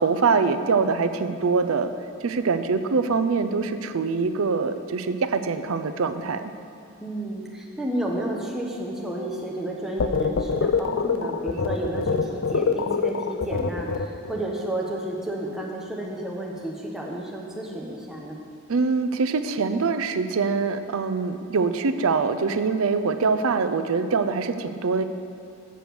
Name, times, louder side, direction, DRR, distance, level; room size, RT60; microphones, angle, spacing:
voice 1, 0.0-1.9 2.2-6.4 18.7-25.0, right 4 dB, 75° right, 10 dB, 0.5 m, -24 dB
voice 2, 7.0-18.4, right 1 dB, ahead, -3 dB, 1.0 m, -31 dB
sound 1, 10.0-14.4, left 5 dB, 60° left, 0.4 m, -25 dB
7.6 x 6.6 x 6.9 m, 2.6 s
head